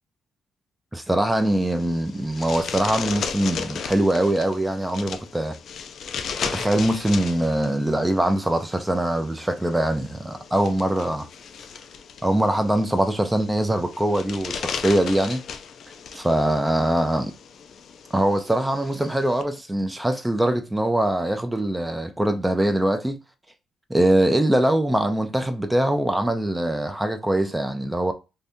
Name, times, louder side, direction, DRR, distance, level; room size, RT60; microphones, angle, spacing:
voice 1, 0.9-5.6 6.4-11.3 12.2-15.4 16.1-17.3 18.1-23.2 23.9-28.1, right 1 dB, 10° right, 0.4 m, -22 dB
sound 1, 1.2-19.4, left 6 dB, 60° left, 0.4 m, -36 dB
2.7 x 2.6 x 3.4 m
cardioid pair, 115°, 0 cm